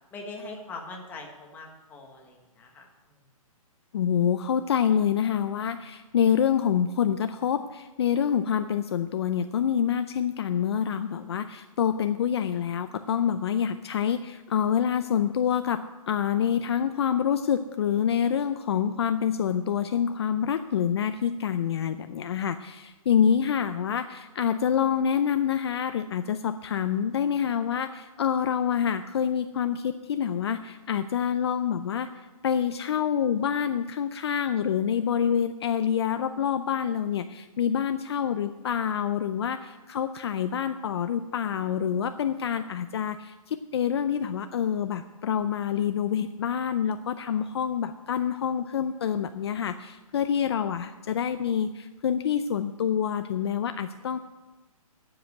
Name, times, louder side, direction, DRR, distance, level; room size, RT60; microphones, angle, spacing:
voice 1, 0.1-2.8, left 3 dB, 10° left, 0 dB, 1.3 m, -41 dB
voice 2, 3.9-54.2, left 8 dB, 45° left, 10 dB, 0.5 m, -27 dB
10.0 x 7.6 x 8.0 m, 1.2 s
hypercardioid pair, 160°, 18 cm